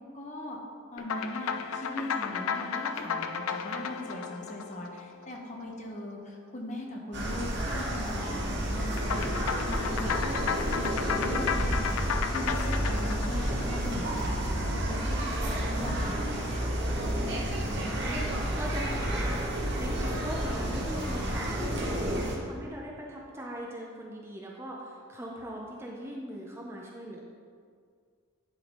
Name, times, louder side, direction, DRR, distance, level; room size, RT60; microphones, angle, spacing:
voice 1, 0.1-0.6 0.9-10.2 10.7-15.2 15.5-16.7, left 1 dB, 35° left, 0 dB, 0.9 m, -39 dB
sound 1, 1.0-5.6 9.0-14.4, left 7 dB, 80° left, 0.4 m, -34 dB
sound 2, 7.1-22.4, right 1 dB, 55° right, 1.1 m, -30 dB
voice 2, 17.6-19.5 19.8-27.2, equal, 10° right, -2 dB, 0.6 m, -40 dB
10.5 x 3.9 x 3.4 m, 2.1 s
head